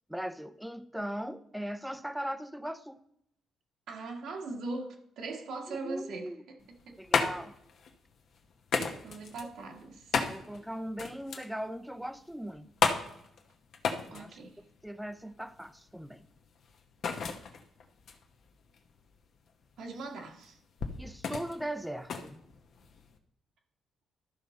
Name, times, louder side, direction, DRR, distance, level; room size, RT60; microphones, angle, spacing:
voice 1, 0.1-3.0 5.7-6.4 7.0-7.5 10.3-12.7 14.1-14.4 14.8-16.3 21.0-22.4, equal, 5° right, 12 dB, 0.6 m, -39 dB
voice 2, 3.9-7.0 9.0-10.1 14.1-14.6 19.8-20.6, right 3 dB, 75° right, 1 dB, 1.5 m, -40 dB
sound 1, 6.6-23.2, left 5 dB, 60° left, 1.0 m, -35 dB
12.5 x 5.3 x 4.2 m, 0.73 s
cardioid pair, 90°, 0 cm